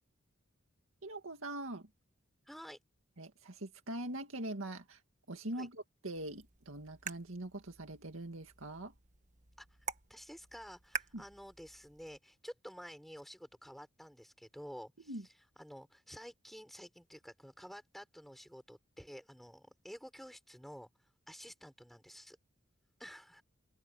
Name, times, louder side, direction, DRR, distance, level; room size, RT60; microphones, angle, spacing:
voice 1, 1.0-1.9 3.2-5.0 5.3-8.9 11.1-11.2 15.1-15.2, right 1 dB, 70° right, 2.2 m, -43 dB
voice 2, 2.5-2.8 5.5-5.7 9.6-9.8 10.1-22.4 23.0-23.4, equal, ahead, 5.5 m, -51 dB
sound 1, 6.2-12.2, right 7 dB, 35° right, 1.4 m, -48 dB
open air
head